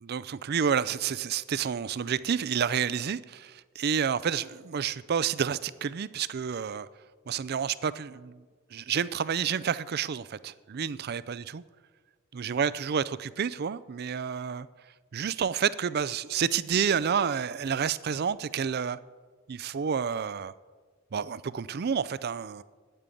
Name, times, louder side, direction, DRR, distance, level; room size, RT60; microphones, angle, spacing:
voice 1, 0.0-6.9 7.3-8.4 8.7-11.4 12.3-14.7 15.1-19.0 19.5-20.5 21.1-22.6, right 7 dB, 50° right, 0.4 m, -29 dB
9.2 x 8.9 x 8.4 m
head